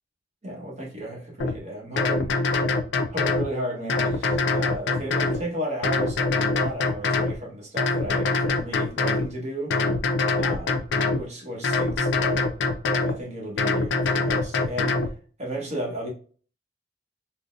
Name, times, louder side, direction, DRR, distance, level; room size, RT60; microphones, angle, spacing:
voice 1, 0.4-2.8 3.1-9.8 10.4-10.8 11.2-12.5 13.0-15.1 15.4-16.1, right 1 dB, 40° right, 1.2 m, -34 dB
sound 1, 1.4-1.5 2.0-3.5 3.9-5.4 5.8-7.4 7.8-9.3 9.7-11.2 11.6-13.2 13.6-15.1, left 3 dB, 75° left, 0.4 m, -24 dB
3.7 x 2.1 x 2.5 m
head